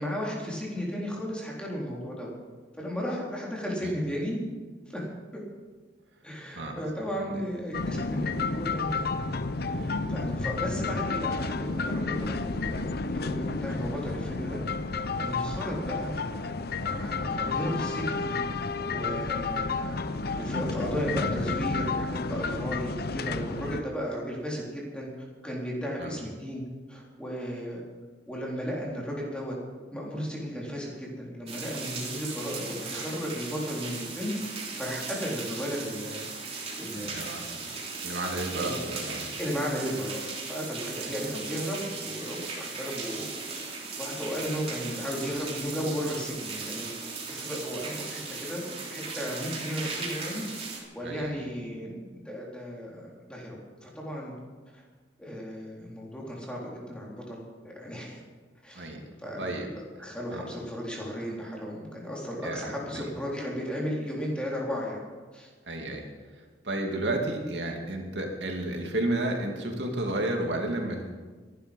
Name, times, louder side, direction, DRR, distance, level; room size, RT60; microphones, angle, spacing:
voice 1, 0.0-2.3 2.8-4.4 4.9-5.1 5.3-5.4 6.2-9.1 9.7-12.8 13.1-14.6 15.2-16.1 16.8-18.3 18.9-20.0 20.3-25.1 25.4-26.6 26.9-27.8 28.3-29.5 29.9-34.3 34.7-36.2 36.5-37.6 38.5-38.8 39.4-43.3 43.6-46.9 47.3-50.4 50.7-52.0 52.2-54.3 54.7-54.8 55.2-58.2 58.6-58.9 59.2-65.0 65.3-65.5, equal, 5° left, -4 dB, 4.0 m, -35 dB
sound 1, 7.7-23.8, left 3 dB, 60° left, 0.7 m, -31 dB
sound 2, 31.5-50.8, right 4 dB, 35° right, 3.1 m, -37 dB
voice 2, 36.9-37.4 38.0-39.3 51.0-51.4 58.7-59.0 59.4-59.7 60.3-60.5 62.4-63.0 65.7-66.0 66.6-71.1, right 1 dB, 75° right, 2 dB, 2.6 m, -32 dB
22.5 x 11.5 x 5.4 m, 1.4 s
head